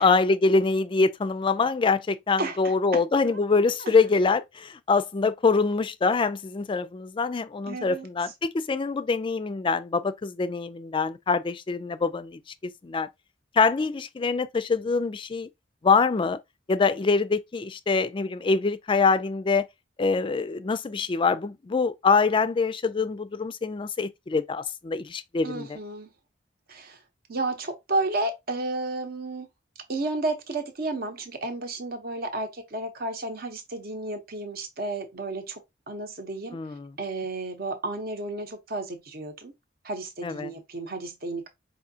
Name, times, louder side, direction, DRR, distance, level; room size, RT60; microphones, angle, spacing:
voice 1, 0.0-13.1 13.6-15.5 15.8-16.4 16.7-19.7 20.0-25.7 36.5-36.9 40.2-40.5, left 4 dB, 25° left, 0.3 m, -24 dB
voice 2, 2.4-3.0 3.8-4.0 7.7-8.1 25.4-26.1 26.7-27.0 27.3-29.5 29.9-35.6 35.9-36.6 37.0-39.5 39.8-41.5, right 2 dB, 55° right, 0.8 m, -32 dB
4.9 x 2.7 x 2.7 m
head